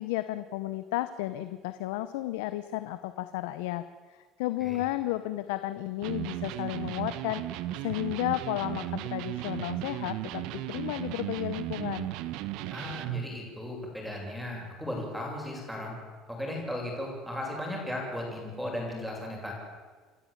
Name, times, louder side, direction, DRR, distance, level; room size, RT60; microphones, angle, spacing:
voice 1, 0.0-3.8 4.1-12.1, left 16 dB, 90° left, 12 dB, 0.9 m, -33 dB
Electric guitar, 6.0-13.3, right 14 dB, 75° right, 1.2 m, -35 dB
voice 2, 12.7-16.0 16.3-19.5, left 1 dB, ahead, 0 dB, 7.8 m, -36 dB
29.0 x 13.0 x 8.9 m, 1.5 s
supercardioid pair, 110°, 0 cm